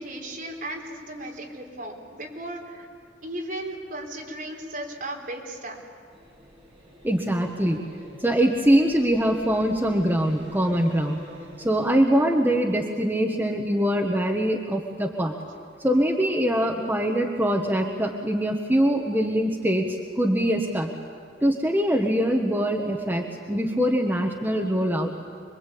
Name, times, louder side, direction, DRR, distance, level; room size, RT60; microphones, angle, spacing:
voice 1, 0.0-2.9 3.2-5.8, right 1 dB, 50° right, 0 dB, 4.1 m, -36 dB
sound 1, 6.1-12.0, equal, 35° right, 7.4 m, -46 dB
voice 2, 7.0-7.8 8.2-11.2 11.6-15.3 15.8-20.9 21.4-25.1, equal, 10° right, 2 dB, 1.3 m, -23 dB
26.0 x 22.5 x 8.5 m, 2.2 s
head